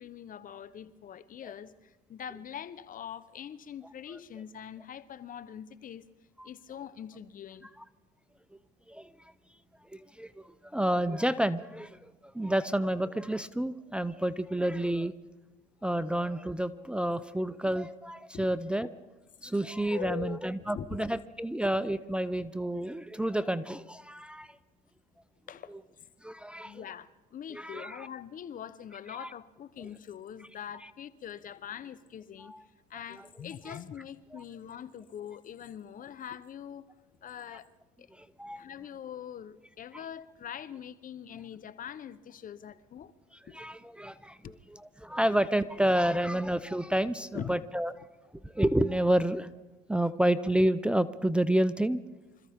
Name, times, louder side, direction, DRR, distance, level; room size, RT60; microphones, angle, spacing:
voice 1, 0.0-6.1 6.4-7.7 18.3-18.5 19.9-21.1 25.5-26.1 26.6-32.5 32.9-36.9 37.2-37.7 38.0-38.1 38.6-43.1 43.5-43.6 44.4-44.6 47.3-47.6, left 9 dB, 45° left, 0.9 m, -43 dB
voice 2, 9.9-12.0 12.3-15.1 15.8-18.9 19.4-24.5 26.2-26.8 27.5-28.1 29.1-29.3 32.4-32.6 33.7-33.8 34.3-34.4 38.1-38.6 43.5-44.4 45.0-47.9 48.5-49.5 49.9-52.0, right 1 dB, 5° right, 0.6 m, -29 dB
26.0 x 14.0 x 3.6 m
supercardioid pair, 80°, 19 cm